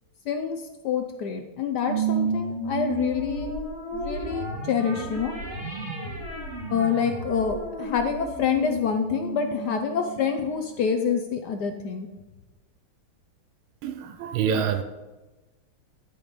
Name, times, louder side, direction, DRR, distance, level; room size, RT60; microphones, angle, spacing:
voice 1, 0.3-3.5 3.9-5.4 6.7-12.1, left 7 dB, 65° left, 6 dB, 1.1 m, -27 dB
sound 1, 1.9-10.6, right 3 dB, 30° right, 2.9 m, -32 dB
voice 2, 13.8-14.8, right 7 dB, 85° right, 9 dB, 1.5 m, -26 dB
11.0 x 5.3 x 5.0 m, 1.1 s
omnidirectional pair, 2.3 m